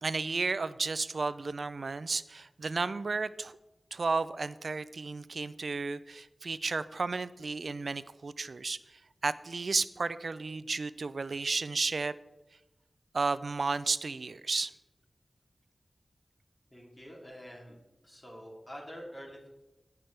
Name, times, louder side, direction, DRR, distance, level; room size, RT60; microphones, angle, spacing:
voice 1, 0.0-3.5 3.9-12.1 13.1-14.7, right 4 dB, 75° right, 15 dB, 0.4 m, -33 dB
voice 2, 16.7-17.8 18.0-19.5, equal, 30° left, -2 dB, 2.9 m, -46 dB
17.5 x 6.0 x 3.3 m, 1.0 s
cardioid pair, 50°, 0 cm